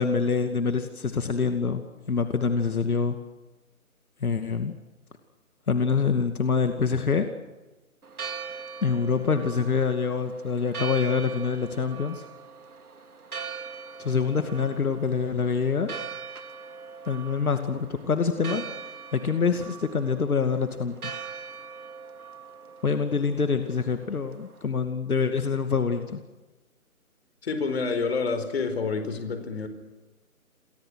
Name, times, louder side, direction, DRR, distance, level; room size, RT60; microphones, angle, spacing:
voice 1, 0.0-3.2 4.2-4.7 5.7-7.3 8.8-12.2 14.0-15.9 17.1-18.6 19.1-21.1 22.8-26.2, left 5 dB, 75° left, 7 dB, 2.5 m, -25 dB
Church bell, 8.0-24.7, right 5 dB, 80° right, 3.0 m, -41 dB
voice 2, 27.4-29.7, left 4 dB, 45° left, 8 dB, 4.8 m, -28 dB
29.0 x 23.5 x 6.5 m, 1.1 s
hypercardioid pair, 170°, 44 cm